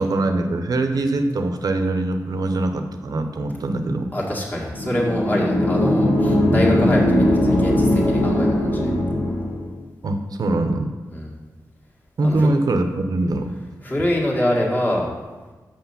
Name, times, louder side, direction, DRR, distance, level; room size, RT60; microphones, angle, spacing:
voice 1, 0.0-4.1 10.0-10.9 12.2-13.5, right 2 dB, 60° right, 6 dB, 0.7 m, -22 dB
voice 2, 4.1-8.9 11.1-11.3 12.2-12.5 13.8-15.1, left 1 dB, 25° left, -3 dB, 1.9 m, -24 dB
sound 1, 4.7-9.7, left 1 dB, 80° left, 2.3 m, -19 dB
6.7 x 5.8 x 5.7 m, 1.3 s
wide cardioid pair, 105°, 7 cm